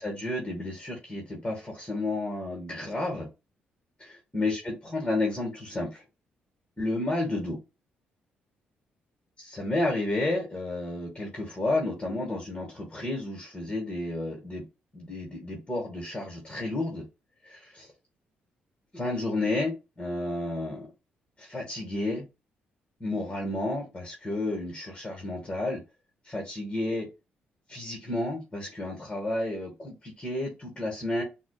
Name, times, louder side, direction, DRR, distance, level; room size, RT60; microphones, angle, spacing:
voice 1, 0.0-3.3 4.0-6.0 6.8-7.6 9.5-14.6 14.9-17.0 17.4-17.9 18.9-20.9 21.4-22.2 23.0-25.8 26.2-27.1 27.7-31.2, left 2 dB, 20° left, 1.9 m, -31 dB
6.2 x 2.8 x 2.4 m
cardioid pair, 85°, 4 cm